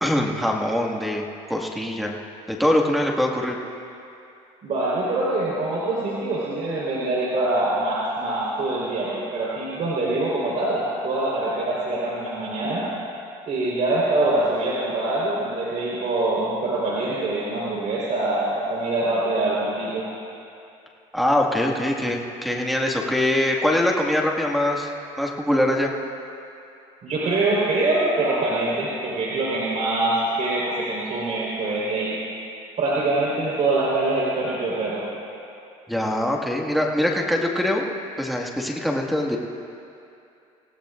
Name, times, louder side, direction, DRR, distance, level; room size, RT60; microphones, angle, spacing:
voice 1, 0.0-2.1 2.5-3.6 21.1-24.9 25.2-25.9 35.9-37.8 38.2-39.4, left 1 dB, ahead, -1 dB, 1.9 m, -23 dB
voice 2, 4.6-12.9 13.5-20.0 27.0-32.2 32.8-35.0, right 2 dB, 55° right, -6 dB, 4.3 m, -24 dB
27.0 x 17.0 x 2.6 m, 2.6 s
supercardioid pair, 85°, 16 cm